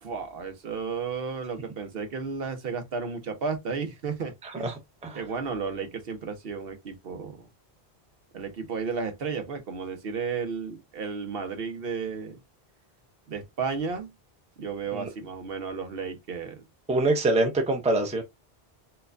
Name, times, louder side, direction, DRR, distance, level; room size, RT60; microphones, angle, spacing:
voice 1, 0.0-4.7 5.1-7.5 8.3-12.4 13.3-14.1 14.6-16.6, right 5 dB, 65° right, 1.0 m, -33 dB
voice 2, 4.6-5.2 14.9-15.1 16.9-18.2, right 2 dB, 10° right, 0.5 m, -25 dB
4.3 x 2.2 x 2.5 m
omnidirectional pair, 1.1 m